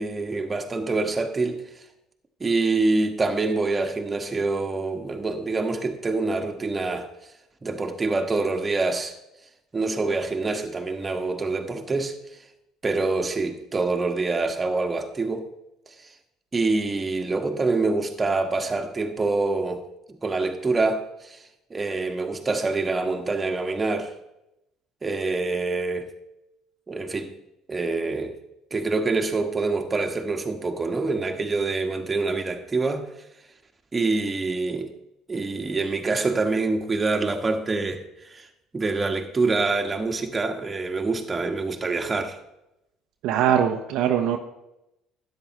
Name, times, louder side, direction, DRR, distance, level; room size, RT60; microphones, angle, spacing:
voice 1, 0.0-1.8 2.4-7.1 7.6-9.1 9.7-12.2 12.8-15.5 15.9-16.0 16.5-19.8 20.1-21.4 21.7-24.1 25.0-26.1 26.9-27.3 27.7-28.3 28.7-33.0 33.9-34.9 35.3-38.5 38.7-42.4, right 3 dB, 25° right, 4 dB, 1.4 m, -26 dB
voice 2, 43.2-44.4, right 9 dB, 65° right, 4 dB, 0.8 m, -21 dB
12.5 x 9.3 x 3.1 m, 0.87 s
hypercardioid pair, 60°, 0 cm